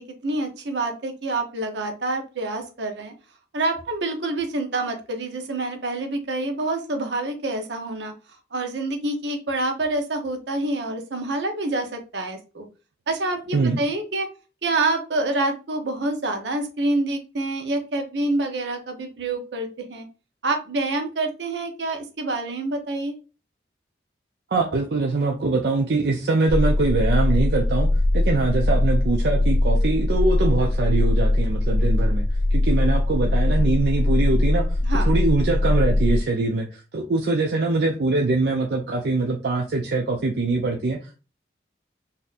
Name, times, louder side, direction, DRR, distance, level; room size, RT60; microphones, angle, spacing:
voice 1, 0.0-3.1 3.5-8.1 8.5-12.7 13.1-14.3 14.6-20.1 20.4-23.2 34.8-35.1, right 2 dB, 85° right, 4 dB, 0.8 m, -27 dB
voice 2, 24.5-32.2 32.5-34.8 35.1-41.2, right 3 dB, 65° right, 1 dB, 0.5 m, -23 dB
sound 1, 26.5-36.2, left 1 dB, 45° left, 0.3 m, -21 dB
4.1 x 2.7 x 2.5 m, 0.33 s
head